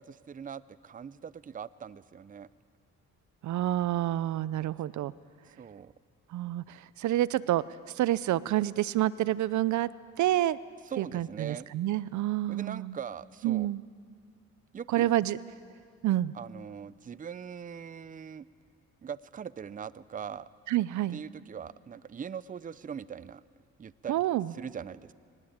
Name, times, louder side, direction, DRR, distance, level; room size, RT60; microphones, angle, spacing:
voice 1, 0.0-2.5 5.6-5.9 10.9-11.7 12.5-13.7 14.7-15.1 16.3-18.5 19.0-20.5 21.1-23.4 23.8-24.1 24.5-25.1, right 7 dB, 25° right, 18 dB, 0.6 m, -41 dB
voice 2, 3.4-5.1 6.3-7.6 8.0-9.9 10.2-10.6 11.0-13.0 13.4-13.8 14.9-15.4 16.0-16.3 20.7-21.2 24.1-24.5, right 14 dB, 70° right, 18 dB, 0.6 m, -28 dB
23.0 x 19.5 x 8.8 m, 2.1 s
cardioid pair, 90°, 30 cm